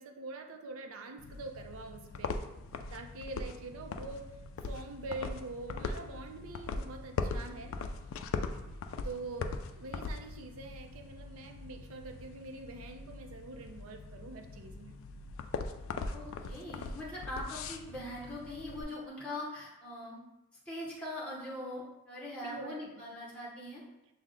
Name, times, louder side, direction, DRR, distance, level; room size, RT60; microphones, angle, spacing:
voice 1, 0.0-2.3 2.9-4.3 4.7-7.7 9.0-15.0 22.4-23.2, right 3 dB, 75° right, 5 dB, 0.5 m, -44 dB
sound 1, 1.2-18.8, left 4 dB, 65° left, 0.3 m, -41 dB
voice 2, 16.1-20.2 20.7-23.8, left 1 dB, 5° left, -6 dB, 0.7 m, -42 dB
6.1 x 2.1 x 3.7 m, 0.95 s
head